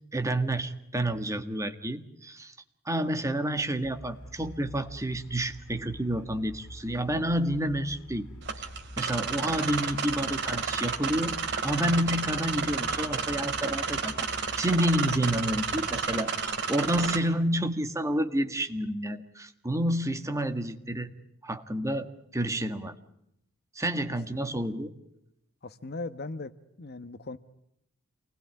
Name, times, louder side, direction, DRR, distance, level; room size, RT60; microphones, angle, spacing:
voice 1, 0.1-2.5 2.8-8.3 9.0-21.1 21.4-22.9 23.7-25.0, right 1 dB, 15° right, 1.7 m, -29 dB
sound 1, 3.8-16.2, equal, 80° left, 3.5 m, -47 dB
sound 2, 8.4-17.2, right 5 dB, 55° right, 3.0 m, -31 dB
voice 2, 25.6-26.5 26.8-27.4, left 3 dB, 45° left, 1.1 m, -38 dB
28.5 x 20.5 x 9.6 m
head